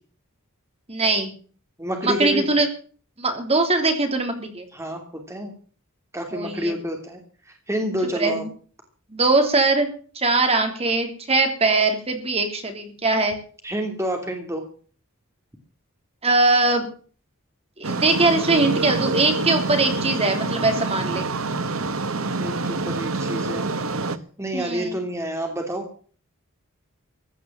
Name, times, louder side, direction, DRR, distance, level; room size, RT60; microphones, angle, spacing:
voice 1, 0.9-1.3 2.0-2.7 3.2-4.7 6.3-6.7 8.1-8.5 9.1-9.9 10.2-13.4 16.2-16.9 17.8-21.3 24.5-25.0, right 3 dB, 30° right, 5 dB, 3.5 m, -21 dB
voice 2, 1.8-2.5 4.7-5.5 6.1-7.2 7.5-8.4 13.6-14.6 22.4-23.7 24.4-25.9, equal, 15° right, 3 dB, 2.8 m, -28 dB
sound 1, 17.8-24.2, right 3 dB, 75° right, 1.4 m, -26 dB
15.5 x 11.0 x 7.3 m, 0.42 s
head